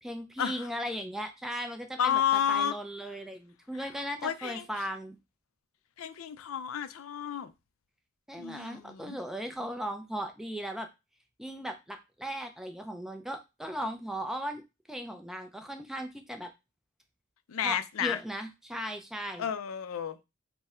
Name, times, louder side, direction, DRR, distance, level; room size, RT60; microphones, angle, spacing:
voice 1, 0.0-2.2 2.5-5.2 8.3-10.9 11.4-14.6 14.9-16.5 17.6-19.5, equal, ahead, 0.4 m, -37 dB
voice 2, 2.0-2.7 4.2-4.6 6.0-7.5 8.4-9.2 17.5-18.2 19.4-20.2, left 9 dB, 85° left, 0.4 m, -31 dB
3.6 x 2.1 x 4.2 m
head